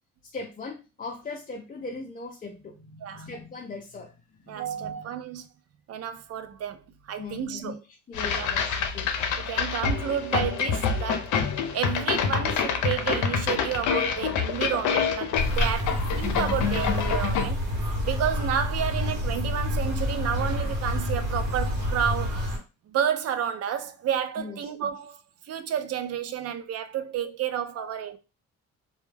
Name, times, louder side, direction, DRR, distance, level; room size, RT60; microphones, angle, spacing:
voice 1, 0.2-4.2 4.4-5.3 7.2-7.7 8.1-9.1 15.9-16.0 24.4-24.9 27.8-27.9, left 3 dB, 30° left, 0.4 m, -40 dB
voice 2, 4.5-5.5 5.9-6.8 7.1-7.8 8.3-8.5 9.4-11.3 11.7-17.6 18.0-22.5 22.9-25.2 25.5-28.2, right 9 dB, 55° right, 0.4 m, -30 dB
sound 1, 8.1-17.5, left 6 dB, 80° left, 0.5 m, -27 dB
sound 2, 15.4-22.6, left 1 dB, 80° right, 1.0 m, -28 dB
2.2 x 2.1 x 3.2 m
cardioid pair, 90°, 30 cm